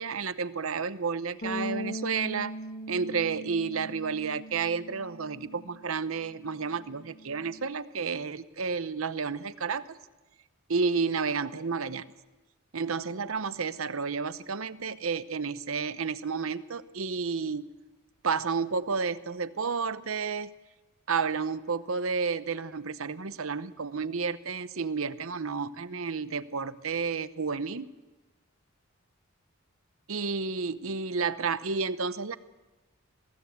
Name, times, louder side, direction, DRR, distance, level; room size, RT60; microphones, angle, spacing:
voice 1, 0.0-2.5 2.9-10.0 10.7-12.0 12.7-17.7 18.2-20.5 21.1-27.9 30.1-32.4, right 5 dB, 70° right, 14 dB, 0.8 m, -31 dB
Bass guitar, 1.4-7.7, equal, 45° left, 2.8 m, -40 dB
22.0 x 16.0 x 8.2 m, 1.1 s
head